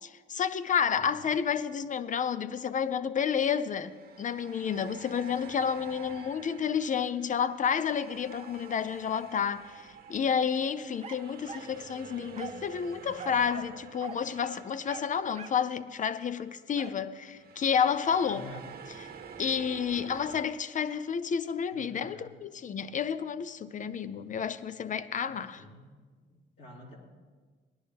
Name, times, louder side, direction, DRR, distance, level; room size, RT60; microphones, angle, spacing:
voice 1, 0.0-18.5 19.4-25.6, left 7 dB, 40° left, 0.6 m, -30 dB
sound 1, 1.2-1.3 3.7-16.1 16.4-16.6 17.3-20.4, right 6 dB, 50° right, 1.1 m, -49 dB
sound 2, 11.0-11.7 12.3-12.7 13.2-13.7 14.0-14.2 14.8-15.6 16.8-17.0, right 6 dB, 35° right, 0.7 m, -43 dB
voice 2, 18.3-18.6 21.7-22.3 25.2-25.9 26.3-27.1, equal, 60° left, 3.6 m, -49 dB
18.5 x 11.0 x 3.4 m
cardioid pair, 90°, 20 cm